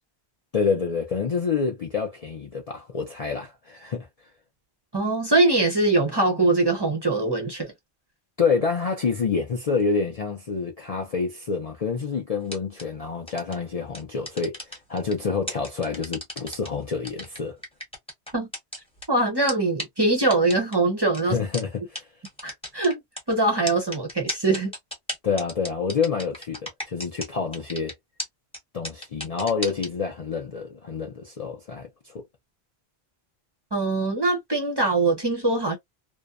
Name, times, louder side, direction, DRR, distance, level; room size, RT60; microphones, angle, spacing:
voice 1, 0.5-4.3 8.4-17.6 21.2-22.1 25.2-27.9 28.7-32.2, left 5 dB, 50° left, 0.5 m, -27 dB
voice 2, 4.9-7.7 18.3-18.5 19.1-21.4 22.4-23.0 23.3-24.7 33.7-35.8, right 2 dB, 30° right, 0.6 m, -22 dB
sound 1, 12.4-12.8 13.3-13.5 13.9-15.1 15.5-16.7 17.0-19.0 19.5-19.6 19.8-19.9 20.3-20.7 21.1-21.2 21.5-21.6 21.9-22.0 22.2-23.2 23.7-27.3 27.5-27.9 28.2-28.3 28.5-28.6 28.8-29.9, equal, 5° left, 0.9 m, -33 dB
2.6 x 2.1 x 2.3 m
omnidirectional pair, 1.1 m